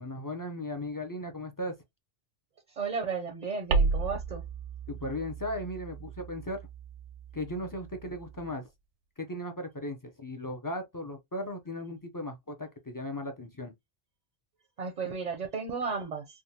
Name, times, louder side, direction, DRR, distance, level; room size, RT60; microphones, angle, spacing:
voice 1, 0.0-1.8 4.9-6.6 7.3-8.7 9.2-13.7, left 1 dB, 30° left, 0.3 m, -37 dB
voice 2, 2.7-4.4 14.8-16.4, right 5 dB, 50° right, 0.5 m, -34 dB
sound 1, 3.7-8.5, right 4 dB, 80° right, 0.9 m, -33 dB
3.6 x 2.2 x 2.7 m
omnidirectional pair, 1.2 m